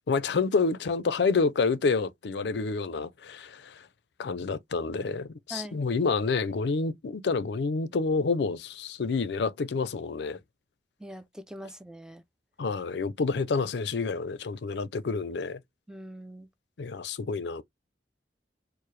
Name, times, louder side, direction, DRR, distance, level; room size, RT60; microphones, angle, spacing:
voice 1, 0.1-3.7 4.2-10.4 12.6-15.6 16.8-17.6, left 4 dB, 65° left, 0.5 m, -28 dB
voice 2, 5.5-5.8 11.0-12.2 15.9-16.5, right 1 dB, 5° right, 0.4 m, -42 dB
4.6 x 2.0 x 3.1 m
head